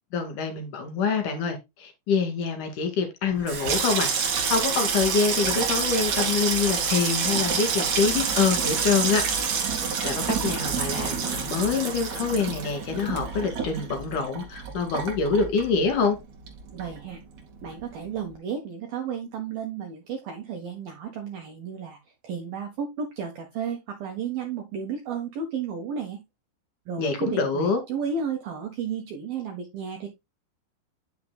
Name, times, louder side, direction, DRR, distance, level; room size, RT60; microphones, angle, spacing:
voice 1, 0.1-4.1 4.4-9.2 9.7-16.2 27.0-27.8, left 5 dB, 50° left, 3.0 m, -26 dB
Water tap faucet / Sink (filling or washing), 3.3-16.2 16.5-17.1 17.4-17.7, right 6 dB, 50° right, 2.6 m, -27 dB
voice 2, 16.7-17.2 17.6-22.0 22.2-26.2 26.9-30.1, right 6 dB, 65° right, 2.5 m, -33 dB
10.5 x 6.6 x 2.3 m
omnidirectional pair, 5.6 m